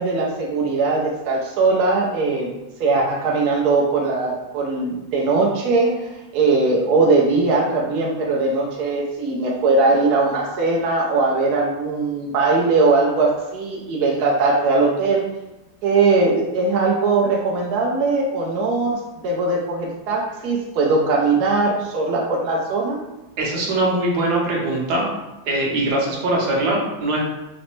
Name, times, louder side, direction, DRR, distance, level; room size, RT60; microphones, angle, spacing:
voice 1, 0.0-15.3 15.8-23.0, right 3 dB, 75° right, -2 dB, 0.9 m, -20 dB
voice 2, 23.4-25.1 25.4-27.2, right 2 dB, 60° right, -2 dB, 1.2 m, -21 dB
4.9 x 2.1 x 3.0 m, 1.0 s
omnidirectional pair, 2.2 m